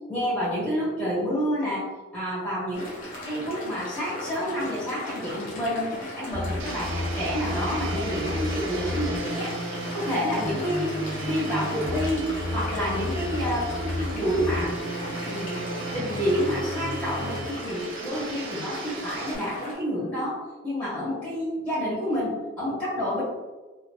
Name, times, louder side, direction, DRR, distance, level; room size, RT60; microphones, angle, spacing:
voice 1, 0.1-1.9 2.1-2.8 3.2-9.5 9.9-10.9 11.2-14.8 15.2-20.4 20.6-23.2, equal, 5° left, -9 dB, 1.5 m, -29 dB
sound 1, 2.7-19.7, left 1 dB, 40° left, 0.8 m, -38 dB
sound 2, 6.3-17.4, left 1 dB, 50° right, 1.3 m, -33 dB
Domestic sounds home sounds, 6.6-19.3, right 5 dB, 65° right, 0.4 m, -40 dB
3.0 x 2.2 x 2.6 m, 1.2 s
head